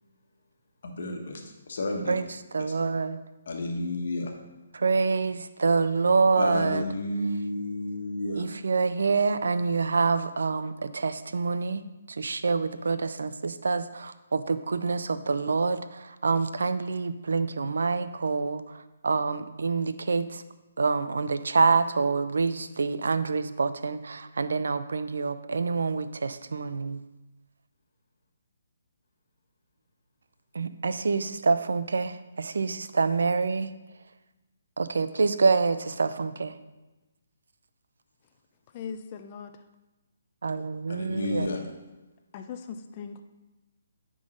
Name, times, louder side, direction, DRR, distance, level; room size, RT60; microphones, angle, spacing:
voice 1, 0.8-1.4 1.7-2.2 2.7-2.8 3.5-4.3 6.4-8.4 40.9-41.6, left 2 dB, 60° left, 2 dB, 1.3 m, -31 dB
voice 2, 2.5-3.2 4.7-6.8 8.4-20.4 20.8-27.0 30.5-33.7 34.8-36.6 40.4-41.5, right 4 dB, 70° right, 12 dB, 0.5 m, -26 dB
voice 3, 38.7-39.7 42.3-43.2, left 6 dB, 35° left, 7 dB, 0.5 m, -39 dB
9.6 x 3.8 x 5.0 m, 1.1 s
figure-of-eight pair, 140°, 0 cm